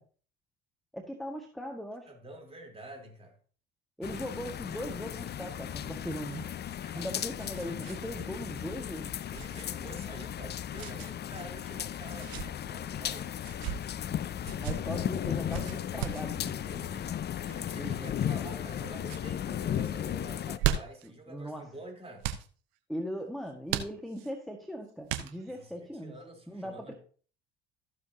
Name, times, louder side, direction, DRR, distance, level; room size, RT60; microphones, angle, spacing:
voice 1, 0.9-2.1 4.0-6.6 6.9-9.1 14.6-16.8 17.7-18.1 21.3-21.6 22.9-26.1 26.5-26.9, equal, ahead, 1.6 m, -39 dB
voice 2, 2.1-3.4 6.9-7.2 8.2-8.3 9.3-13.3 16.6-17.1 17.4-22.3 25.5-26.9, right 2 dB, 20° right, 3.6 m, -48 dB
sound 1, 4.0-20.6, left 10 dB, 35° left, 0.6 m, -36 dB
sound 2, 6.7-8.0 8.3-8.4 9.3-9.6 10.7-11.1 12.0-12.5 13.4-13.8 14.4-14.8 15.5-16.3 17.4-17.8 18.4-18.8 19.0-19.3 20.3-21.1 22.2-22.5 23.7-24.3 25.1-25.6, right 10 dB, 75° right, 1.0 m, -35 dB
14.5 x 7.2 x 2.8 m
hypercardioid pair, 65°, 31 cm